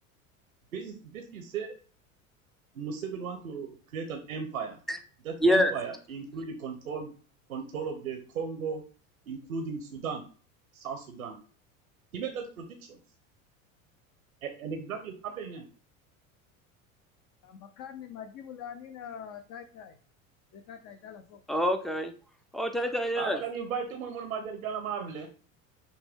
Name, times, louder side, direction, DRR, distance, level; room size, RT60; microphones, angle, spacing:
voice 1, 0.7-1.7 2.7-4.8 5.2-7.1 7.5-8.8 9.3-10.2 10.7-11.4 12.1-13.0 14.4-15.6 23.2-25.3, right 6 dB, 90° right, 4 dB, 0.7 m, -36 dB
voice 2, 5.4-5.7 21.5-22.1 22.5-23.4, equal, ahead, 8 dB, 0.4 m, -25 dB
voice 3, 17.4-20.0 20.5-21.4, left 8 dB, 50° left, 6 dB, 0.6 m, -44 dB
5.9 x 2.2 x 3.5 m, 0.40 s
hypercardioid pair, 85°, 41 cm